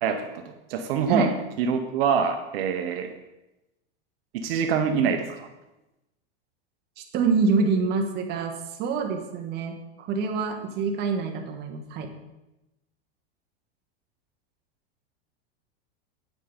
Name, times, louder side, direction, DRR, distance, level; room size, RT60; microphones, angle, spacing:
voice 1, 0.0-3.1 4.3-5.5, right 6 dB, 65° right, 6 dB, 0.8 m, -25 dB
voice 2, 7.0-12.1, right 4 dB, 30° right, 2 dB, 1.1 m, -26 dB
8.4 x 5.4 x 5.0 m, 0.98 s
supercardioid pair, 150°, 32 cm